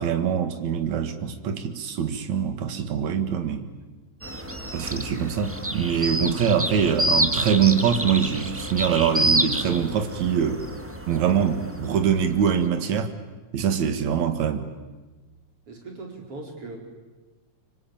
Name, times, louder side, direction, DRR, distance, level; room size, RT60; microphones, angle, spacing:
voice 1, 0.0-3.7 4.7-10.6 11.1-13.1 13.5-14.7, right 7 dB, 65° right, 8 dB, 3.1 m, -24 dB
sound 1, 4.2-12.6, right 1 dB, 15° right, 0.4 m, -28 dB
voice 2, 15.7-16.8, right 2 dB, 45° right, 1 dB, 5.2 m, -39 dB
26.0 x 24.5 x 8.9 m, 1.2 s
omnidirectional pair, 3.6 m